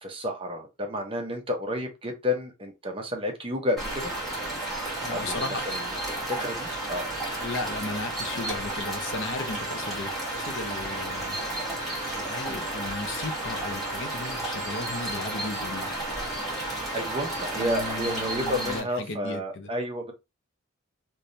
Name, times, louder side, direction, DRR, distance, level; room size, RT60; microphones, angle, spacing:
voice 1, 0.0-4.1 5.1-7.1 12.4-12.6 16.9-20.1, left 1 dB, 25° right, 0.9 m, -31 dB
sound 1, 3.8-18.8, right 2 dB, ahead, 1.7 m, -32 dB
voice 2, 4.6-5.6 7.4-11.4 11.8-15.9 17.6-19.7, left 3 dB, 65° left, 0.7 m, -36 dB
3.4 x 3.2 x 2.7 m
head